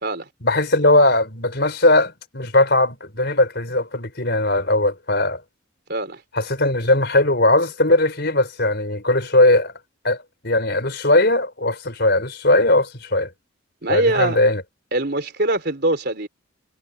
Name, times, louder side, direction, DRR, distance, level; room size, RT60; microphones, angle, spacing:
voice 1, 0.4-5.4 6.3-9.7 10.0-13.3 13.9-14.6, left 2 dB, 50° left, 5.2 m, -19 dB
voice 2, 5.9-6.2 13.8-14.4 14.9-16.3, right 2 dB, 50° right, 3.9 m, -22 dB
head